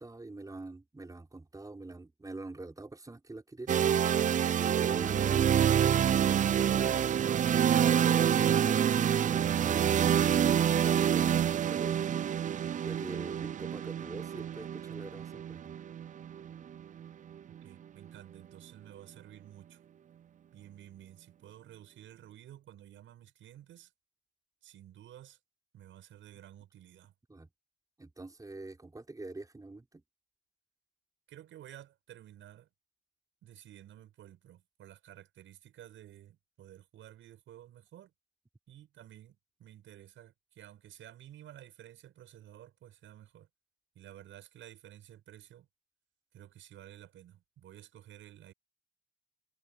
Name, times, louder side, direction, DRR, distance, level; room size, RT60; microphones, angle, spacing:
voice 1, 0.0-3.8 4.4-5.8 6.3-6.9 12.8-15.7 27.3-27.5 28.0-30.0, right 2 dB, 15° right, 5.6 m, -45 dB
sound 1, 3.7-17.5, right 9 dB, 40° right, 0.4 m, -27 dB
voice 2, 17.6-19.8 20.5-23.9 24.6-25.4 25.7-27.1 31.3-32.7 33.4-38.1 38.7-43.5 43.9-45.7 46.3-48.5, right 12 dB, 75° right, 6.6 m, -53 dB
cardioid pair, 90°, 20 cm